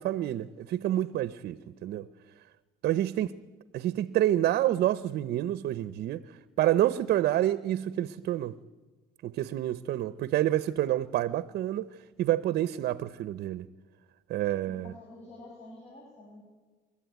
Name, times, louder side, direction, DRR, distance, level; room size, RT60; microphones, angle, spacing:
voice 1, 0.0-2.1 2.8-3.3 3.7-6.2 6.6-8.5 9.2-11.9 12.2-13.7 14.3-14.9, right 13 dB, 70° right, 0.8 m, -28 dB
voice 2, 14.7-16.4, left 2 dB, 40° left, 7.9 m, -49 dB
29.5 x 13.5 x 9.4 m
cardioid pair, 110°, 17 cm